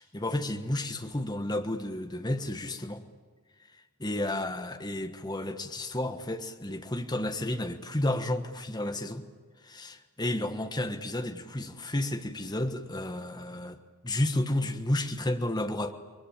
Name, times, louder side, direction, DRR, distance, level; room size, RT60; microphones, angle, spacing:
voice 1, 0.0-3.0 4.0-9.3 9.6-13.8 14.0-15.9, left 1 dB, 20° left, 1.4 m, -31 dB
29.5 x 22.0 x 8.7 m
head